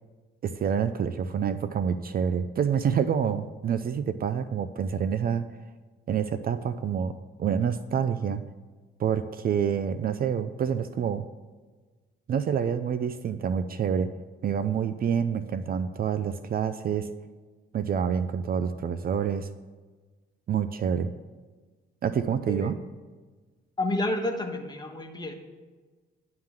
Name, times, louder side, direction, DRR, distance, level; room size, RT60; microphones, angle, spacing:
voice 1, 0.4-5.5 6.1-7.1 7.4-8.4 9.0-11.2 12.3-14.1 14.4-17.1 17.7-19.5 20.5-21.1 22.0-22.8, right 7 dB, 50° right, 12 dB, 0.5 m, -27 dB
voice 2, 23.8-25.3, left 1 dB, 20° left, 4 dB, 1.3 m, -30 dB
11.0 x 3.8 x 7.3 m, 1.3 s
cardioid pair, 90°, 20 cm